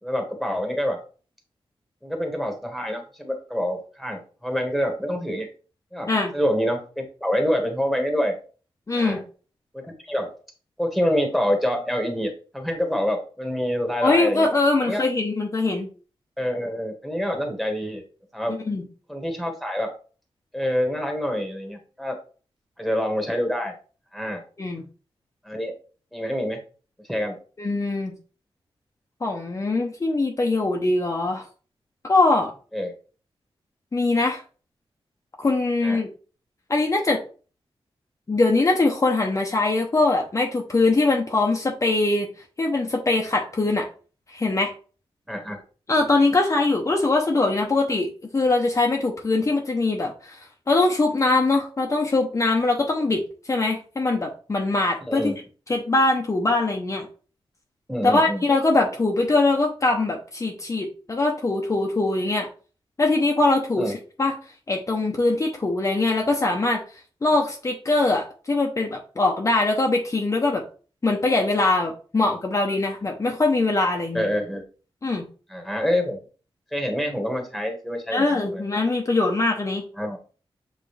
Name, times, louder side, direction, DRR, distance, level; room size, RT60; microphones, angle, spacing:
voice 1, 0.0-1.0 2.0-5.5 5.9-8.4 8.9-9.2 9.7-10.4 10.8-14.5 14.8-15.0 16.4-18.0 18.3-18.6 19.1-19.9 20.5-22.2 22.8-23.7 24.1-24.4 25.4-25.7 26.1-26.6 27.1-27.4 32.7-32.9 35.8-36.0 45.3-45.6 55.0-55.4 57.9-58.4 63.8-63.9 74.1-74.6 75.5-76.2 76.7-78.6 80.0-80.2, equal, ahead, 3 dB, 1.6 m, -26 dB
voice 2, 8.9-9.2 14.0-15.9 18.5-18.8 24.6-24.8 27.6-28.1 29.2-31.5 32.0-32.5 33.9-34.4 35.4-36.1 36.7-37.2 38.3-42.3 42.6-43.9 44.3-44.7 45.9-50.4 50.7-53.2 53.5-55.3 55.7-57.1 58.0-62.5 63.0-64.3 64.7-66.8 67.2-70.6 71.0-74.2 75.0-75.3 78.1-79.8, left 2 dB, 30° left, 1 dB, 0.9 m, -22 dB
7.7 x 3.7 x 3.3 m, 0.37 s
wide cardioid pair, 135°, 10 cm